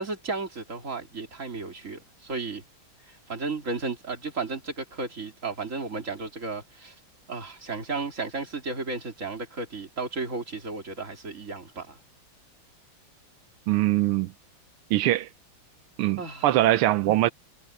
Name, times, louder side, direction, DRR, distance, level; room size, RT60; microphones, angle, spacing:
voice 1, 0.0-2.6 3.1-7.0 7.3-12.0 16.2-16.5, right 3 dB, 35° right, 3.4 m, -34 dB
voice 2, 13.7-14.3 14.9-15.3 16.0-17.3, right 15 dB, 90° right, 1.6 m, -22 dB
omnidirectional pair, 2.4 m